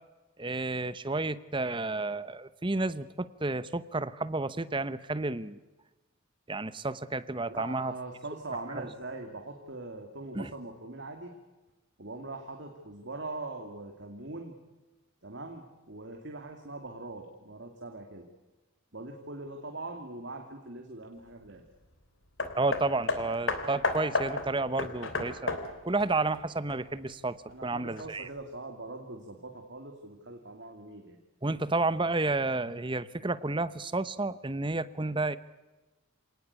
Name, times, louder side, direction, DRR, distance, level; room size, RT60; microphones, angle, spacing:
voice 1, 0.4-5.6 6.5-7.9 8.7-8.9 10.3-10.5 22.6-25.5 25.8-28.3 31.4-35.4, right 2 dB, 25° right, 15 dB, 0.9 m, -31 dB
voice 2, 7.5-11.3 12.0-14.5 15.2-18.2 18.9-21.6 27.5-31.2, right 2 dB, 55° right, 3 dB, 2.7 m, -42 dB
Hammer, 22.4-27.1 28.0-28.1, left 2 dB, 65° left, 3.2 m, -33 dB
28.0 x 19.0 x 8.3 m, 1.1 s
head